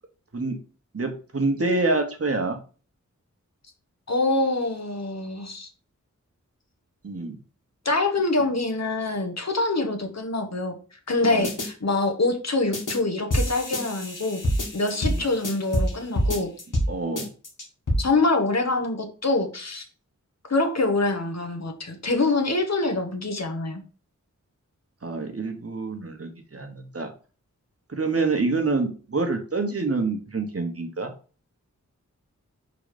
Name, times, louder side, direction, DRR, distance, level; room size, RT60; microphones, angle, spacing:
voice 1, 0.9-2.6 7.0-7.4 11.2-11.5 15.0-15.2 16.9-17.3 25.0-27.1 27.9-31.1, right 3 dB, 50° right, 4 dB, 1.2 m, -27 dB
voice 2, 4.1-5.7 7.8-10.8 11.1-14.4 14.7-16.5 18.0-19.8 20.5-23.8, left 2 dB, 60° left, 5 dB, 1.2 m, -25 dB
sound 1, 11.4-11.7 12.7-13.0 13.3-16.9 17.2-18.0, equal, 85° left, 2.0 m, -26 dB
4.8 x 3.9 x 5.0 m, 0.37 s
wide cardioid pair, 70°, 31 cm